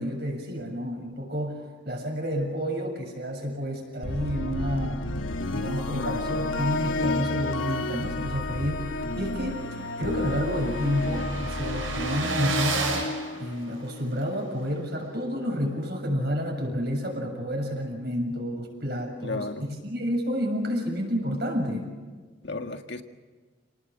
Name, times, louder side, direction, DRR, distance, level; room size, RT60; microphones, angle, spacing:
voice 1, 0.0-1.6 1.9-5.0 5.5-9.7 10.0-13.1 13.4-19.5 19.8-21.9, equal, 55° right, 3 dB, 7.0 m, -30 dB
sound 1, 4.0-14.2, left 2 dB, 80° left, 1.2 m, -31 dB
voice 2, 5.9-6.5 19.2-19.7 22.4-23.0, left 2 dB, 60° left, 6 dB, 1.8 m, -34 dB
sound 2, 8.7-8.8 9.1-9.2 9.3-14.2, right 3 dB, 85° right, 7.1 m, -33 dB
29.5 x 19.5 x 7.6 m, 1.4 s
head